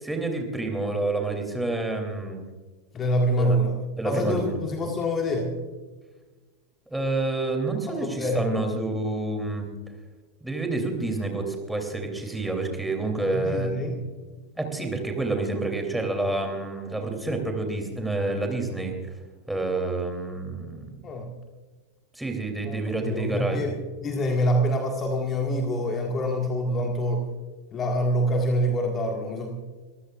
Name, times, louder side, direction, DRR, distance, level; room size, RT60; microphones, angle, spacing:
voice 1, 0.0-2.4 3.4-3.6 4.0-4.6 6.9-9.7 10.4-13.7 14.6-18.9 19.5-21.0 22.2-23.7, right 2 dB, 5° right, 3 dB, 3.1 m, -28 dB
voice 2, 2.9-3.8 4.0-5.5 7.9-8.7 13.3-14.0 21.0-21.3 22.6-23.7 24.0-27.2 27.7-29.5, equal, 25° left, 2 dB, 1.8 m, -26 dB
24.5 x 15.5 x 2.5 m, 1.3 s
figure-of-eight pair, 90°, 0 cm